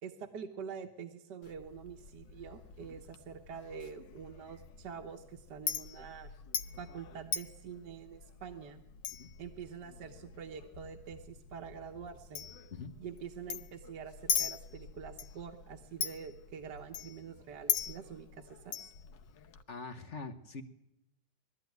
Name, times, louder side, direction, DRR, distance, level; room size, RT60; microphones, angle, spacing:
voice 1, 0.0-6.3 6.7-8.8 9.4-12.5 13.0-18.9, right 7 dB, 70° right, 3 dB, 1.8 m, -46 dB
Chink clink, 1.4-19.6, left 7 dB, 80° left, 1.6 m, -41 dB
voice 2, 19.7-20.6, left 4 dB, 45° left, 5 dB, 1.2 m, -43 dB
20.5 x 13.5 x 9.4 m, 0.86 s
omnidirectional pair, 1.9 m